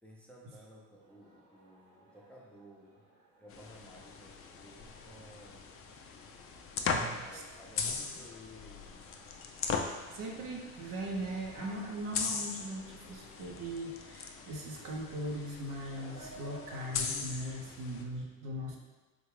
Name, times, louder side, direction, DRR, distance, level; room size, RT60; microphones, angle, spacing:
voice 1, 0.0-3.0 3.4-5.9 6.9-9.1, equal, 5° left, -4 dB, 0.7 m, -55 dB
sound 1, 1.0-16.8, right 2 dB, 90° right, 1.0 m, -59 dB
sound 2, 3.5-18.0, left 5 dB, 35° left, 0.4 m, -40 dB
voice 2, 6.9-7.4 10.1-18.8, right 1 dB, 50° right, -1 dB, 0.8 m, -40 dB
3.6 x 2.5 x 3.2 m, 1.2 s
hypercardioid pair, 65°, 41 cm